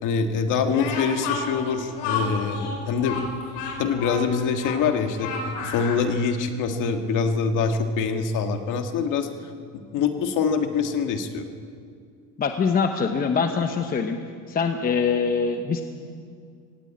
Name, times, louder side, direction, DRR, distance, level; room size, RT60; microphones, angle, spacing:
voice 1, 0.0-3.2 3.8-5.3 5.6-9.3 9.9-11.5, left 5 dB, 45° left, 6 dB, 1.8 m, -24 dB
Speech, 0.7-6.1, left 4 dB, 75° left, 5.2 m, -31 dB
voice 2, 12.4-14.2 14.5-15.8, left 5 dB, 20° left, 6 dB, 0.9 m, -23 dB
18.0 x 18.0 x 8.8 m, 2.2 s
cardioid pair, 150°, 44 cm